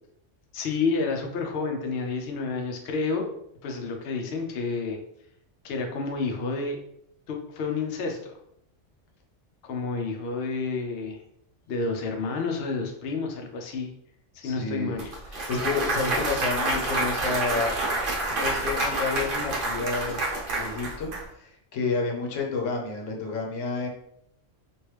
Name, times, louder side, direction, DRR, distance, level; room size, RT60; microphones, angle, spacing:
voice 1, 0.5-3.3 3.6-5.0 5.6-6.8 7.3-8.3 9.6-11.2 11.7-13.9 14.4-15.1, left 4 dB, 65° left, 2 dB, 0.7 m, -29 dB
voice 2, 14.4-15.0 15.3-17.8 18.4-20.2 20.6-21.1 21.3-23.9, left 4 dB, 80° left, 1 dB, 1.1 m, -30 dB
Clapping / Cheering / Applause, 15.0-21.2, right 2 dB, 50° right, 0.8 m, -28 dB
3.0 x 2.5 x 3.1 m, 0.73 s
omnidirectional pair, 1.3 m